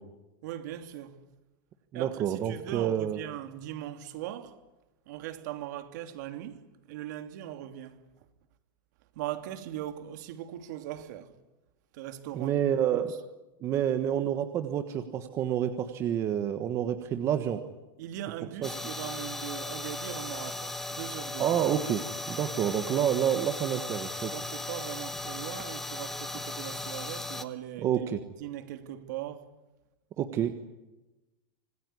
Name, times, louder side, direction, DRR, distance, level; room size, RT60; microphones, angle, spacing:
voice 1, 0.4-1.2 1.9-4.6 5.1-8.0 9.1-11.3 11.9-13.0 18.0-21.6 24.3-28.1 28.4-29.5, right 12 dB, 55° right, 3.0 m, -40 dB
voice 2, 1.9-3.2 12.3-13.1 13.6-17.6 18.6-18.7 21.4-22.0 22.3-24.3 27.8-28.2 30.2-30.5, right 10 dB, 25° right, 1.4 m, -28 dB
sound 1, 18.6-27.5, left 2 dB, 5° left, 1.3 m, -37 dB
26.5 x 20.0 x 9.9 m
supercardioid pair, 170°, 11 cm